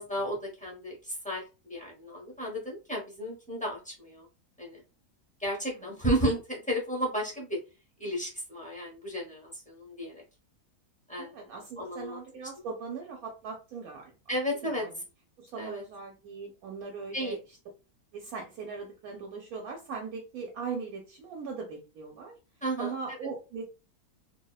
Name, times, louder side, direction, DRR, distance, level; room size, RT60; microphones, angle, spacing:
voice 1, 0.0-4.3 4.6-4.8 5.4-7.6 8.0-10.2 11.1-11.5 11.8-12.2 14.3-14.9 15.6-15.8 17.1-17.3 22.6-22.9, equal, 10° left, -4 dB, 0.5 m, -33 dB
voice 2, 11.2-14.1 14.6-14.9 15.4-17.4 18.1-22.3 22.8-23.6, right 5 dB, 75° right, 1 dB, 1.0 m, -39 dB
2.6 x 2.1 x 2.2 m, 0.30 s
omnidirectional pair, 1.6 m